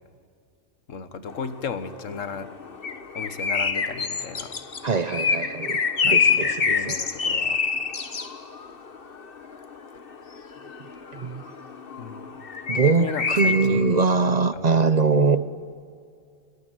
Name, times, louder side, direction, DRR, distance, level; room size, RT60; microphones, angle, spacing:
voice 1, 0.9-2.5 3.2-4.5 6.0-7.6 12.0-12.3 12.8-14.1 14.5-14.7, left 5 dB, 90° left, 1.7 m, -35 dB
sound 1, 1.3-13.7, left 5 dB, 50° left, 1.4 m, -27 dB
voice 2, 4.8-7.0 11.1-11.4 12.7-15.4, right 4 dB, 40° right, 0.7 m, -22 dB
26.5 x 22.0 x 9.1 m
omnidirectional pair, 1.3 m